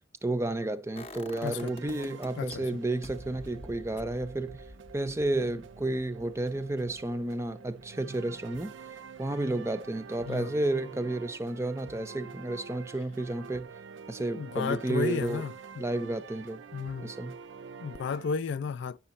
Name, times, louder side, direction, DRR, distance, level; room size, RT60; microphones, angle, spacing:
voice 1, 0.2-4.7 4.9-8.7 9.2-13.7 14.1-15.4 15.8-16.6 17.0-17.4, right 2 dB, 15° right, 0.5 m, -31 dB
sound 1, 1.0-2.6 3.0-8.9 9.2-9.3, left 1 dB, 30° left, 0.7 m, -49 dB
sound 2, 1.3-18.3, right 5 dB, 65° right, 0.4 m, -48 dB
voice 2, 14.4-15.8 16.7-17.1 17.8-19.0, left 5 dB, 60° left, 0.3 m, -33 dB
9.8 x 6.0 x 4.1 m
head